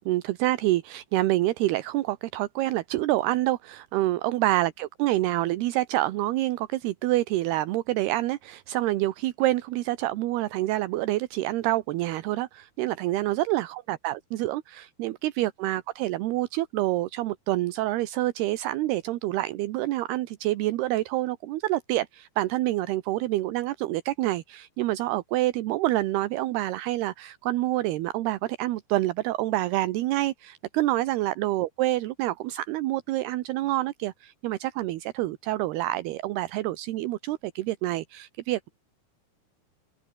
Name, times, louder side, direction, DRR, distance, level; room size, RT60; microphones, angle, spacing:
voice 1, 0.0-38.7, right 16 dB, 80° right, 3.0 m, -27 dB
omnidirectional pair, 4.7 m